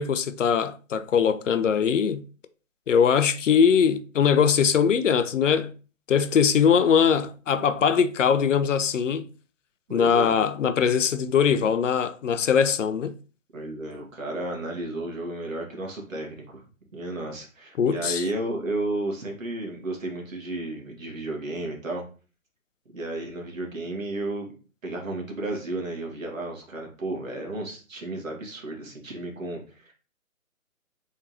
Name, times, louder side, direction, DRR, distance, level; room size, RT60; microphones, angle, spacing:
voice 1, 0.0-2.2 2.9-5.7 6.1-9.3 9.9-13.2 17.8-18.2, left 7 dB, 65° left, 0.5 m, -21 dB
voice 2, 9.9-10.4 13.5-16.6 16.9-22.0 22.9-24.5 24.8-29.9, right 2 dB, 65° right, 1.7 m, -33 dB
3.7 x 3.3 x 2.9 m
figure-of-eight pair, 150°, 42 cm